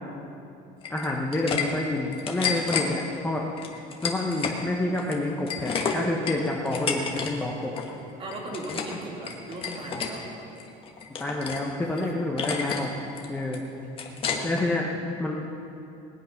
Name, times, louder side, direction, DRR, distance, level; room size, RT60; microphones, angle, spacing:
sound 1, 0.8-1.6 2.0-2.9 3.6-4.6 4.9-7.3 7.6-7.9 8.3-9.0 9.2-10.1 10.6-11.7 12.0-12.1 12.4-12.9 13.2-14.6, left 6 dB, 30° left, 1.4 m, -31 dB
voice 1, 0.9-3.4 4.0-7.7 11.2-12.9 13.3-13.6 14.4-14.9 15.2-15.3, left 2 dB, 10° left, -1 dB, 0.9 m, -28 dB
voice 2, 8.2-10.3 12.0-12.1 14.1-14.8, right 2 dB, 30° right, 0 dB, 2.4 m, -38 dB
20.0 x 8.6 x 5.8 m, 2.7 s
cardioid pair, 160°, 18 cm